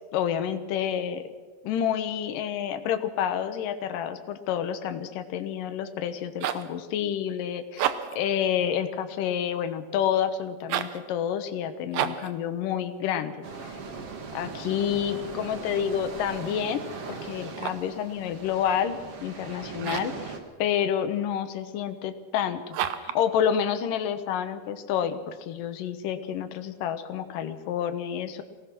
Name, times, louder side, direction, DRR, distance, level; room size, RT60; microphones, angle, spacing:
voice 1, 0.1-1.2 1.6-13.5 14.3-16.8 17.2-20.3 20.6-28.4, left 9 dB, 80° left, 9 dB, 2.7 m, -29 dB
sound 1, 6.1-6.7 7.7-8.3 10.6-11.0 11.9-12.4 17.4-18.0 19.8-20.2 22.7-23.2, right 10 dB, 90° right, 2.7 m, -31 dB
sound 2, 13.4-20.4, right 4 dB, 50° right, 2.7 m, -39 dB
23.5 x 18.0 x 6.1 m, 1.4 s
omnidirectional pair, 3.8 m